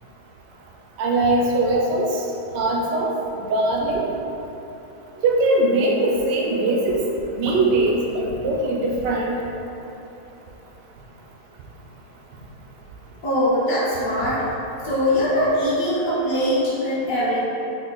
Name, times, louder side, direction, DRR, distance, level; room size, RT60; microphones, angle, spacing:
voice 1, 1.0-2.2 2.5-3.1 3.5-4.0 5.2-7.0 7.3-9.3, right 2 dB, 90° right, -1 dB, 1.3 m, -21 dB
voice 2, 13.2-14.5 14.8-17.4, equal, 60° left, -8 dB, 1.2 m, -22 dB
3.5 x 2.6 x 3.8 m, 3.0 s
omnidirectional pair, 1.8 m